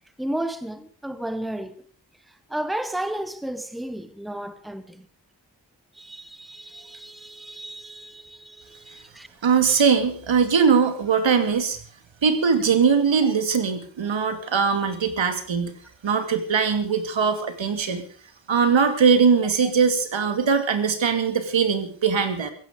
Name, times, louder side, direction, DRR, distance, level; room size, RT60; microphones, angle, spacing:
voice 1, 0.2-1.8 2.5-5.1 5.9-9.3, right 1 dB, ahead, 1.1 m, -33 dB
voice 2, 9.4-11.8 12.2-15.8 16.0-18.0 18.5-22.5, right 6 dB, 85° right, 2.6 m, -21 dB
16.5 x 15.5 x 5.1 m
wide cardioid pair, 165°, 44 cm